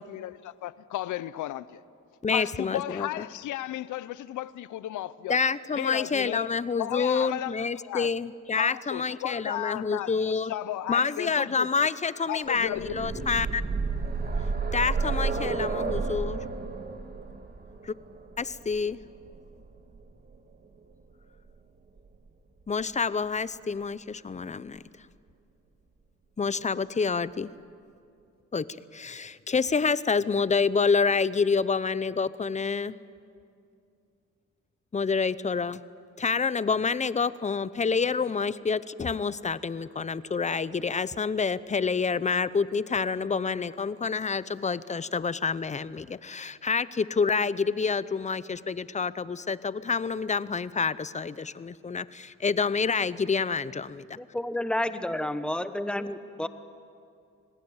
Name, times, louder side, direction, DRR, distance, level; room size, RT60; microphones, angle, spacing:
voice 1, 0.0-1.8 2.3-5.4 5.7-6.5 6.8-8.1 8.5-11.7 12.3-13.3, left 14 dB, 80° left, 0.8 m, -34 dB
voice 2, 2.2-3.1 5.3-10.5 10.9-13.6 14.7-16.4 17.8-17.9 18.4-19.0 22.7-24.8 26.4-27.5 28.5-28.7 28.9-33.0 34.9-35.8 36.2-54.2, left 5 dB, 25° left, 0.7 m, -28 dB
sound 1, 12.6-20.4 21.5-21.6 22.0-22.1, right 4 dB, 30° right, 2.1 m, -31 dB
voice 3, 54.2-56.5, left 1 dB, 5° left, 1.1 m, -30 dB
27.0 x 19.5 x 8.0 m
cardioid pair, 90°, 30 cm